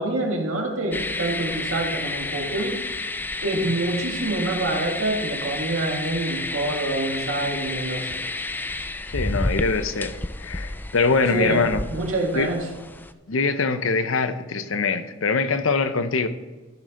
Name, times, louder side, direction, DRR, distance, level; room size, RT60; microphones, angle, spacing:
voice 1, 0.0-2.8 3.4-8.2 11.3-12.7, right 2 dB, 90° right, 1 dB, 1.9 m, -26 dB
sound 1, 0.9-13.1, left 2 dB, 10° left, 0.3 m, -31 dB
voice 2, 9.1-11.8 12.3-12.5 13.3-16.3, left 4 dB, 70° left, 10 dB, 0.7 m, -23 dB
14.5 x 6.4 x 3.8 m, 1.2 s
head